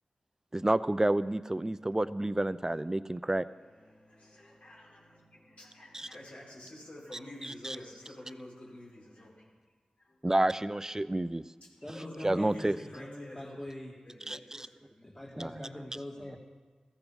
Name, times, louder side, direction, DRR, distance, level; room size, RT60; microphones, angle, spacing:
voice 1, 0.5-3.5 5.9-6.1 7.6-7.8 10.2-11.4 12.2-12.8 14.3-14.4 15.4-15.7, right 1 dB, 20° right, 15 dB, 0.6 m, -29 dB
voice 2, 3.1-9.6 10.0-10.3 11.6-11.7 11.9-13.6 14.0-15.2, left 1 dB, 60° left, -5 dB, 5.3 m, -49 dB
voice 3, 11.8-13.9 15.0-16.4, left 1 dB, 20° left, -3 dB, 2.7 m, -43 dB
14.5 x 14.0 x 5.4 m, 1.4 s
cardioid pair, 40°, 2 cm